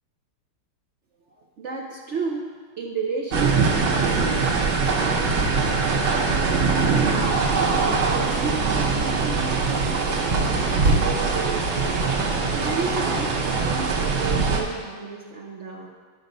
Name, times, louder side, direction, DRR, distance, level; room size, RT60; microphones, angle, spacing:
voice 1, 1.4-2.5 2.8-4.9 8.1-12.0 12.5-15.9, right 5 dB, 60° right, 0 dB, 0.7 m, -32 dB
sound 1, 3.3-14.6, right 4 dB, 90° right, 1.7 m, -22 dB
11.5 x 4.0 x 5.3 m, 1.5 s
omnidirectional pair, 2.1 m